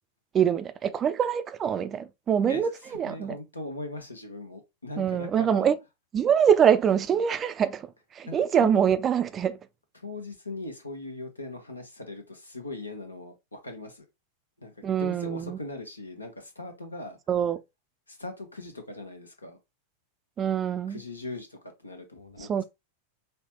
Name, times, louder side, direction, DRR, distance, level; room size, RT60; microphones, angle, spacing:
voice 1, 0.3-3.3 5.0-5.8 6.1-7.9 8.2-9.6 14.8-15.6 17.3-17.6 20.4-21.0 22.5-22.6, right 8 dB, 25° right, 0.4 m, -24 dB
voice 2, 2.5-5.7 8.2-8.8 9.9-14.1 14.6-17.2 18.1-19.6 20.9-22.6, left 2 dB, 80° left, 1.1 m, -40 dB
5.6 x 2.2 x 3.0 m
figure-of-eight pair, 90°, 0 cm